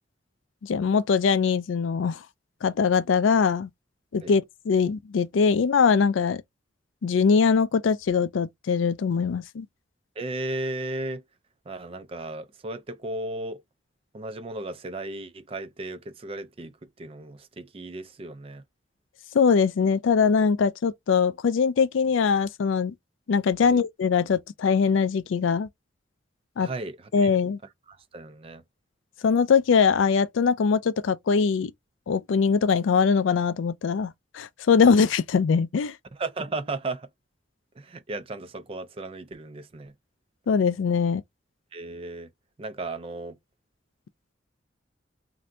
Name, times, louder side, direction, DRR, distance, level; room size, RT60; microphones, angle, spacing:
voice 1, 0.6-2.2 2.6-3.7 4.1-6.4 7.0-9.7 19.3-22.9 23.3-25.7 26.6-26.7 27.1-27.6 29.2-31.7 32.1-36.0 40.5-41.2, left 5 dB, 85° left, 0.4 m, -22 dB
voice 2, 10.2-11.2 11.7-13.6 14.1-16.7 17.0-18.6 23.6-23.8 26.6-27.3 27.9-28.6 36.1-37.1 37.8-39.9 41.7-42.3 42.6-43.4, right 2 dB, 30° right, 0.4 m, -35 dB
3.2 x 2.6 x 2.6 m
head